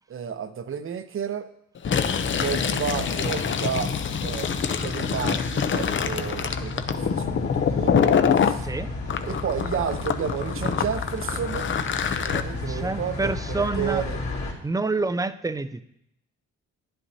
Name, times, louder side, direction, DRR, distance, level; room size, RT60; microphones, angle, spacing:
voice 1, 0.1-1.5 2.4-3.9 4.2-8.7 9.3-11.7 12.0-14.2, right 8 dB, 45° right, 11 dB, 0.8 m, -32 dB
sound 1, 1.8-14.5, left 2 dB, 60° left, 2.7 m, -34 dB
Fill (with liquid), 1.8-8.6 9.1-12.4, left 7 dB, 40° left, 0.6 m, -25 dB
voice 2, 8.6-8.9 12.7-14.0 14.6-15.8, right 3 dB, 10° right, 12 dB, 0.4 m, -27 dB
11.0 x 9.8 x 2.8 m, 0.78 s
cardioid pair, 90°, 30 cm